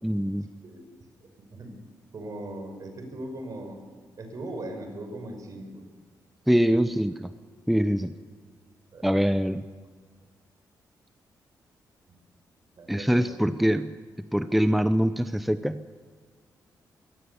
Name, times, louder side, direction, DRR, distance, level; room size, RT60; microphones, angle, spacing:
voice 1, 0.0-0.5 6.5-7.3 7.7-8.1 9.0-9.6 12.9-13.9 14.3-15.8, equal, ahead, 11 dB, 0.7 m, -24 dB
voice 2, 1.2-1.7 2.1-3.8 4.2-5.8 6.6-6.8 7.9-8.1 8.9-9.1 12.1-12.2 12.8-13.4, right 1 dB, 50° right, 5 dB, 5.8 m, -39 dB
23.0 x 17.5 x 7.1 m, 1.5 s
cardioid pair, 85°, 7 cm